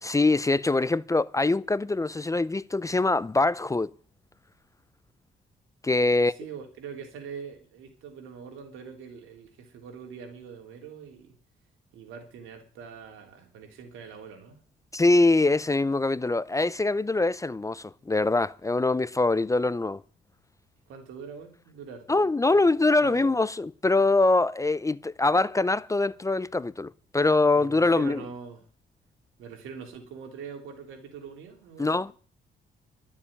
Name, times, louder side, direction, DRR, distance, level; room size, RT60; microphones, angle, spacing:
voice 1, 0.0-3.9 5.8-6.3 14.9-20.0 22.1-28.2 31.8-32.1, left 2 dB, 15° left, 0.5 m, -23 dB
voice 2, 6.1-11.3 11.9-14.6 20.9-22.3 23.0-23.3 27.5-28.6 29.4-32.1, right 6 dB, 90° right, 3.5 m, -43 dB
12.5 x 7.2 x 9.8 m
cardioid pair, 90°, 20 cm